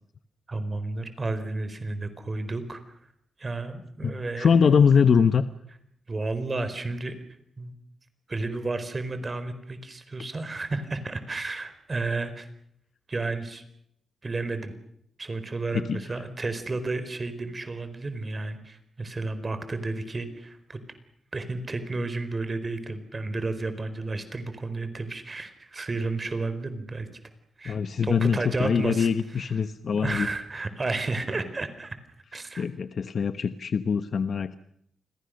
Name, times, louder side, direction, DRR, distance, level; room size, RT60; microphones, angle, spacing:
voice 1, 0.5-3.0 3.4-4.5 6.1-7.1 7.6-7.7 8.3-12.5 13.1-13.6 14.2-14.7 15.2-20.8 21.3-27.1 27.6-27.8 28.0-29.1 29.4-29.5 29.9-32.0 32.3-32.6, right 3 dB, 35° right, 11 dB, 4.5 m, -32 dB
voice 2, 4.0-5.4 15.7-16.2 27.6-30.3 32.6-34.6, left 6 dB, 65° left, 11 dB, 1.1 m, -23 dB
29.0 x 21.5 x 6.7 m, 0.73 s
cardioid pair, 65°, 0 cm